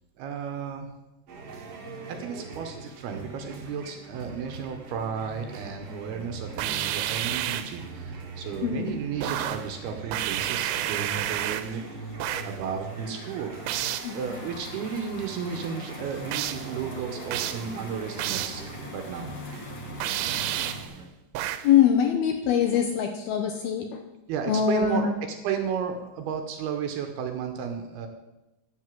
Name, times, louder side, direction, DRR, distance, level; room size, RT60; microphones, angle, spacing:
voice 1, 0.2-0.9 2.1-12.1 12.4-13.5 14.1-18.6 18.9-19.3 24.3-25.0 25.4-28.1, right 7 dB, 75° right, 5 dB, 2.5 m, -33 dB
sound 1, 1.3-21.1, right 3 dB, 50° right, 1.9 m, -41 dB
sound 2, 6.6-7.8 9.2-9.7 10.1-11.8 12.2-12.6 13.7-14.2 16.3-16.7 17.3-17.7 18.2-18.7 20.0-20.9 21.3-21.7, right 12 dB, 90° right, 3.0 m, -30 dB
sound 3, 11.5-20.9, left 3 dB, 60° left, 1.3 m, -44 dB
voice 2, 21.6-24.0 24.5-25.1, left 8 dB, 80° left, 5 dB, 2.3 m, -23 dB
10.5 x 8.0 x 7.5 m, 1.0 s
omnidirectional pair, 5.2 m